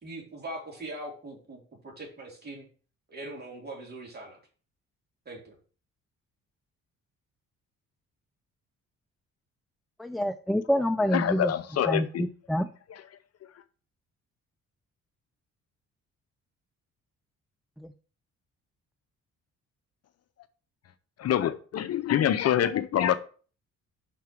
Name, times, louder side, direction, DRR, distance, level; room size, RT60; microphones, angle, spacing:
voice 1, 0.0-2.6 3.1-4.4 5.2-5.5, right 1 dB, 35° right, 3.2 m, -41 dB
voice 2, 10.0-11.5 11.8-12.7 17.8-17.9, equal, ahead, 0.3 m, -27 dB
voice 3, 11.1-12.3 12.9-13.0 21.2-23.1, left 10 dB, 55° left, 0.6 m, -26 dB
5.9 x 4.6 x 6.0 m
cardioid pair, 90°, 30 cm